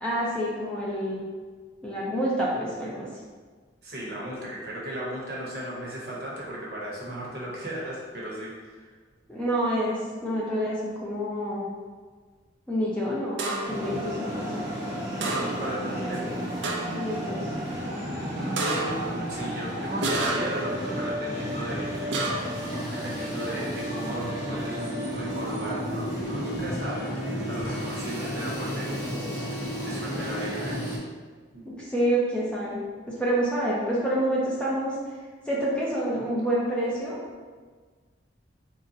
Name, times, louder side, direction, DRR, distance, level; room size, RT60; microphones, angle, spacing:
voice 1, 0.0-1.2 1.8-3.1 9.3-11.7 12.7-14.5 16.9-17.5 31.6-32.8 33.1-34.9 35.5-37.2, right 1 dB, 5° left, -7 dB, 0.5 m, -28 dB
voice 2, 3.8-8.9 15.2-16.3 18.4-21.9 22.9-29.5 29.8-30.8 31.5-31.7, right 1 dB, 55° right, -4 dB, 0.9 m, -36 dB
sound 1, 13.4-13.9 15.2-15.8 16.1-16.2 16.6-17.1 18.6-19.1 20.0-20.7 22.1-22.6, right 3 dB, 75° right, 0.5 m, -30 dB
sound 2, 13.7-31.0, equal, 20° right, 0.8 m, -32 dB
Bowed string instrument, 26.0-30.8, left 1 dB, 55° left, 0.5 m, -46 dB
3.9 x 2.1 x 3.9 m, 1.5 s
head